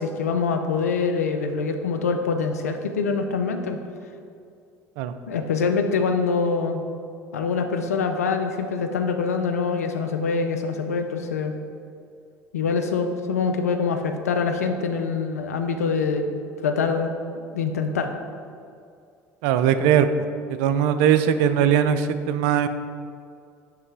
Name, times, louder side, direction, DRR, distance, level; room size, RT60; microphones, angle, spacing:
voice 1, 0.0-3.8 5.3-6.8 7.3-11.5 12.5-17.1 17.5-18.1, left 5 dB, 90° left, 6 dB, 0.4 m, -24 dB
voice 2, 19.4-20.1 20.6-22.7, right 9 dB, 70° right, 10 dB, 0.4 m, -20 dB
9.5 x 3.3 x 3.3 m, 2.4 s
hypercardioid pair, 70°, 8 cm